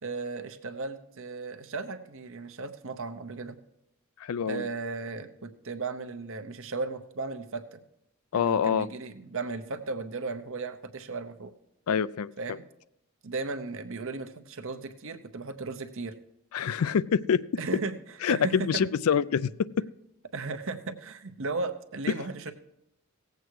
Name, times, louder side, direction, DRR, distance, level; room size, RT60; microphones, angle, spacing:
voice 1, 0.0-3.6 4.5-7.8 8.3-11.5 12.4-12.6 13.2-16.2 17.6-17.9 18.3-18.8 20.3-22.5, right 3 dB, 60° right, 8 dB, 0.9 m, -36 dB
voice 2, 4.2-4.7 8.3-8.9 11.9-12.3 16.5-17.4 18.2-19.5, left 7 dB, 70° left, 17 dB, 0.4 m, -25 dB
17.0 x 8.0 x 4.7 m, 0.80 s
head